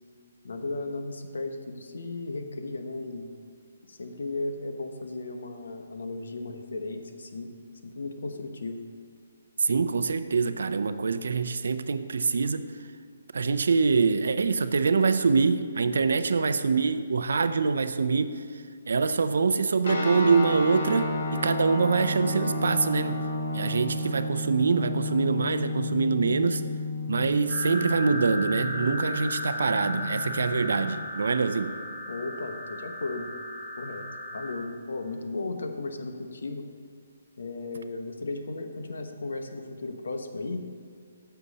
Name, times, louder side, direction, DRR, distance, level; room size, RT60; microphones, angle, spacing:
voice 1, 0.4-3.3 3.9-7.5 7.8-8.8 32.1-33.3 33.8-36.6 37.4-40.6, left 3 dB, 85° left, 6 dB, 1.0 m, -35 dB
voice 2, 9.6-12.7 13.3-23.2 23.5-26.6 27.1-31.7, right 4 dB, 75° right, 11 dB, 0.5 m, -25 dB
sound 1, 19.8-31.0, left 2 dB, 60° left, 1.5 m, -32 dB
sound 2, 27.5-34.5, left 1 dB, 20° left, 1.2 m, -36 dB
10.0 x 6.9 x 4.1 m, 2.1 s
hypercardioid pair, 165°, 0 cm